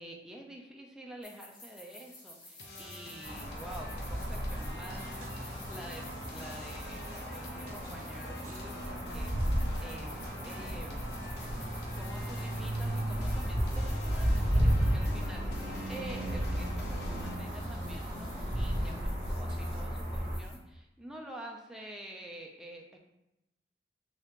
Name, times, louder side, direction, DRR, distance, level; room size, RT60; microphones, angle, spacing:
voice 1, 0.0-11.4 12.0-23.0, right 1 dB, 5° right, -1 dB, 0.4 m, -48 dB
sound 1, 1.2-20.6, left 2 dB, 85° left, 1.5 m, -53 dB
sound 2, 2.6-17.3, left 2 dB, 65° left, 0.6 m, -48 dB
sound 3, 3.2-20.4, equal, 50° right, 1.2 m, -33 dB
3.7 x 2.9 x 3.5 m, 0.90 s
head